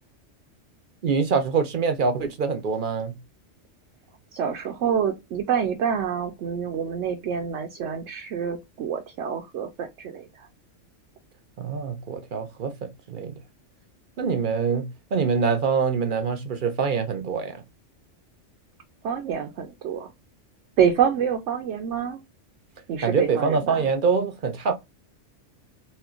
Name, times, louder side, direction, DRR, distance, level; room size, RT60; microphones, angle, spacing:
voice 1, 1.0-3.2 11.6-13.3 14.2-17.6 23.0-24.7, right 5 dB, 55° right, 0.6 m, -25 dB
voice 2, 4.3-10.5 19.0-20.1 20.8-22.2 22.9-23.9, right 8 dB, 75° right, 1.0 m, -27 dB
4.3 x 2.2 x 2.3 m
omnidirectional pair, 1.3 m